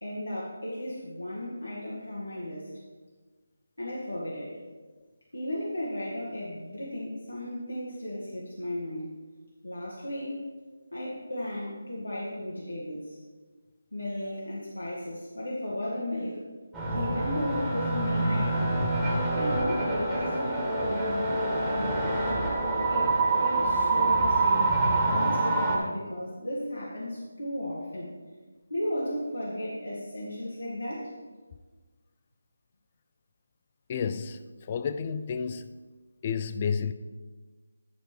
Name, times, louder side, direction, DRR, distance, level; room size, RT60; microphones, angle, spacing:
voice 1, 0.0-2.7 3.8-4.5 5.3-9.2 9.6-10.4 10.9-13.2 13.9-16.4 16.8-18.8 19.3-22.3 22.9-28.1 28.7-31.1, left 1 dB, 85° left, 2.0 m, -35 dB
sound 1, 16.7-25.8, right 2 dB, 5° right, 1.6 m, -26 dB
voice 2, 33.9-34.4 34.7-35.7 36.2-36.9, left 6 dB, 30° left, 0.4 m, -30 dB
11.0 x 5.1 x 4.5 m
figure-of-eight pair, 155°, 0 cm